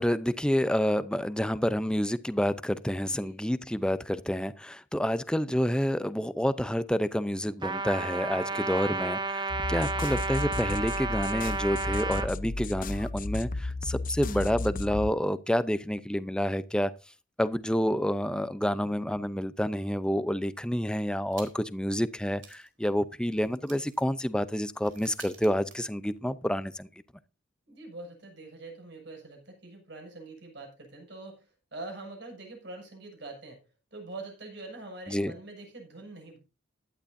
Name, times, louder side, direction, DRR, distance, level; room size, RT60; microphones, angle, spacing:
voice 1, 0.0-16.9 17.4-26.9 35.1-35.3, equal, 5° left, 0.6 m, -29 dB
voice 2, 3.1-3.4 27.7-33.6 33.9-36.4, right 2 dB, 65° right, 6.5 m, -44 dB
Trumpet, 7.6-12.3, right 4 dB, 25° right, 1.1 m, -32 dB
sound 1, 9.5-15.1, left 2 dB, 45° left, 0.7 m, -34 dB
sound 2, 21.3-21.8 22.1-22.2 22.4-26.5, right 7 dB, 80° right, 3.8 m, -53 dB
15.5 x 12.0 x 2.7 m
head